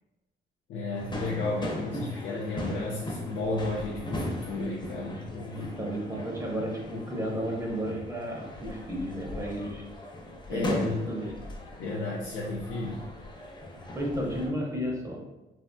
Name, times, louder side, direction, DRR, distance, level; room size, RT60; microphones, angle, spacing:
voice 1, 0.7-5.6 10.5-11.0 11.8-13.0, left 3 dB, 70° left, -3 dB, 0.4 m, -33 dB
sound 1, 0.9-14.5, left 1 dB, 20° left, 0.6 m, -39 dB
voice 2, 5.5-9.8 10.5-11.3 13.9-15.2, equal, 15° right, -2 dB, 0.7 m, -32 dB
2.9 x 2.6 x 2.2 m, 1.0 s
cardioid pair, 90°, 20 cm